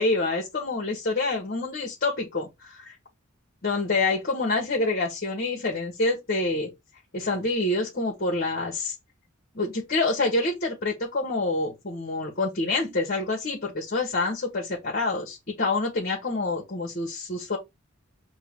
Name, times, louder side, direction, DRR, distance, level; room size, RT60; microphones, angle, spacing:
voice 1, 0.0-2.9 3.6-6.7 7.1-8.9 9.5-17.6, left 2 dB, 50° left, 1.1 m, -27 dB
5.4 x 2.2 x 3.6 m
head